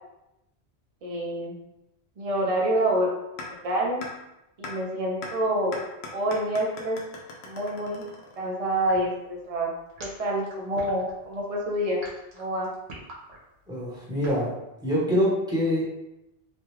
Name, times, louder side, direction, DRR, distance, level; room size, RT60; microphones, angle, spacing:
voice 1, 1.0-1.5 2.2-3.1 3.6-4.1 4.6-5.7 6.1-7.0 7.4-8.0 8.4-9.7 10.0-12.0 12.4-12.7, right 1 dB, 40° right, -2 dB, 0.7 m, -27 dB
sound 1, 3.4-3.5 4.0-4.1 4.6-4.7 5.2-5.3 5.7-8.6, left 3 dB, 75° left, 0.9 m, -39 dB
sound 2, 8.8-14.4, right 2 dB, 80° right, 1.1 m, -43 dB
voice 2, 13.7-14.5 14.8-15.8, equal, 5° right, -7 dB, 0.9 m, -25 dB
3.0 x 2.3 x 3.1 m, 0.90 s
omnidirectional pair, 1.1 m